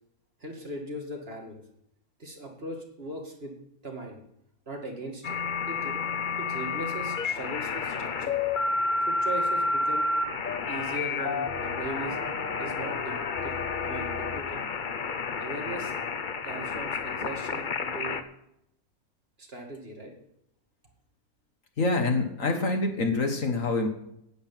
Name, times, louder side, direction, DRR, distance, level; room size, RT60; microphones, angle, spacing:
voice 1, 0.4-1.6 2.2-3.5 3.8-4.2 4.7-5.4 5.7-6.0 6.4-8.4 9.1-10.1 10.7-12.2 12.6-13.2 13.4-13.6 13.8-14.6 15.4-15.9 16.4-18.2 19.4-20.1, right 2 dB, 40° right, 1 dB, 2.4 m, -39 dB
sound 1, 5.2-18.2, left 4 dB, 40° left, 0.8 m, -30 dB
voice 2, 21.8-23.9, left 3 dB, 60° left, 5 dB, 1.9 m, -26 dB
10.0 x 7.9 x 9.2 m, 0.78 s
omnidirectional pair, 1.6 m